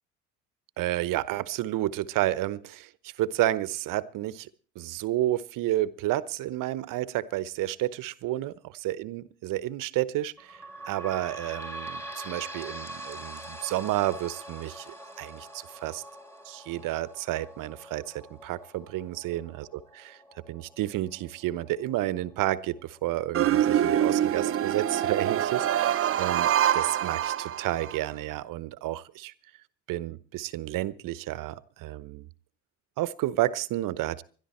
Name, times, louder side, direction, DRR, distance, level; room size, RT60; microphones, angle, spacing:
voice 1, 0.8-4.5 4.7-8.5 8.8-16.0 16.4-19.7 20.0-20.2 20.5-29.3 29.9-32.3 33.0-34.2, right 15 dB, 55° right, 1.0 m, -31 dB
sound 1, 10.4-23.5 24.1-24.2 24.5-24.6 25.4-25.5, right 1 dB, 5° left, 2.5 m, -44 dB
sound 2, 23.3-28.0, right 10 dB, 35° right, 0.7 m, -25 dB
21.5 x 12.5 x 4.4 m
hypercardioid pair, 70°, 38 cm